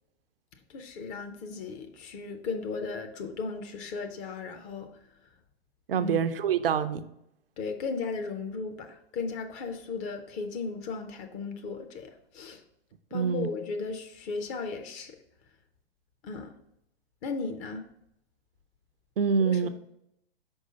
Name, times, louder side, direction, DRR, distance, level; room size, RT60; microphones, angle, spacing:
voice 1, 0.7-4.9 6.0-6.2 7.6-12.6 13.1-15.2 16.2-16.6 17.2-17.8 19.4-19.7, left 4 dB, 25° left, 0.5 m, -36 dB
voice 2, 5.9-7.0 13.1-13.5 19.2-19.7, right 7 dB, 65° right, 0.6 m, -26 dB
5.4 x 4.8 x 3.8 m
figure-of-eight pair, 105°, 31 cm